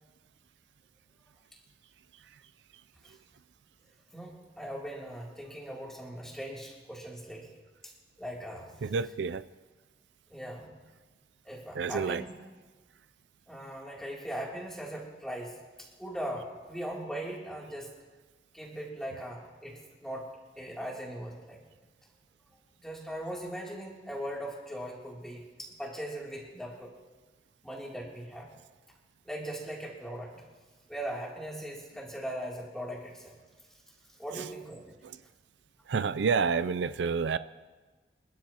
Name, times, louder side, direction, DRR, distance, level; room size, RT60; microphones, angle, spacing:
voice 1, 4.1-7.5 7.8-7.9 8.2-8.7 10.3-10.8 11.4-12.3 13.5-17.9 18.5-21.6 22.8-26.9 27.6-28.5 29.2-30.4 30.9-33.4 34.2-34.8, equal, 5° left, -4 dB, 2.9 m, -39 dB
voice 2, 8.8-9.5 11.7-12.2 34.3-34.5 35.0-35.2 35.9-37.4, right 5 dB, 85° right, 15 dB, 0.4 m, -29 dB
27.5 x 12.5 x 2.9 m, 1.3 s
head